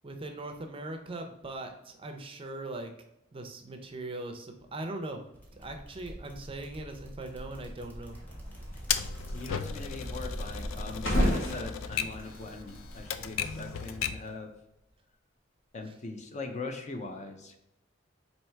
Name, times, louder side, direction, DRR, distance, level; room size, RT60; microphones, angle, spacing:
voice 1, 0.0-2.9 3.3-5.3 5.5-8.2, right 2 dB, 25° right, 4 dB, 0.5 m, -40 dB
sound 1, 5.3-14.6, equal, 10° left, 0.9 m, -45 dB
sound 2, 8.1-14.1, equal, 70° left, 1.6 m, -34 dB
Typewriter, 8.9-14.3, left 8 dB, 90° left, 0.4 m, -36 dB
voice 2, 9.3-14.5 15.7-17.6, left 3 dB, 35° left, 5 dB, 0.5 m, -41 dB
4.4 x 2.8 x 4.4 m, 0.82 s
head